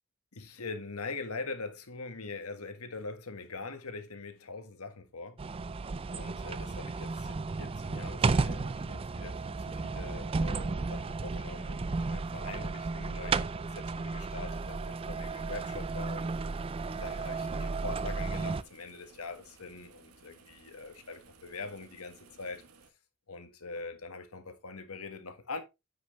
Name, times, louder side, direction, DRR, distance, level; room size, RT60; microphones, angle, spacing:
voice 1, 0.3-5.4 6.1-22.6 23.3-25.6, left 3 dB, 90° left, 1.7 m, -43 dB
sound 1, 5.4-18.6, right 4 dB, 25° right, 0.3 m, -33 dB
sound 2, 14.5-22.9, right 4 dB, 90° right, 1.4 m, -59 dB
9.6 x 6.1 x 3.3 m
head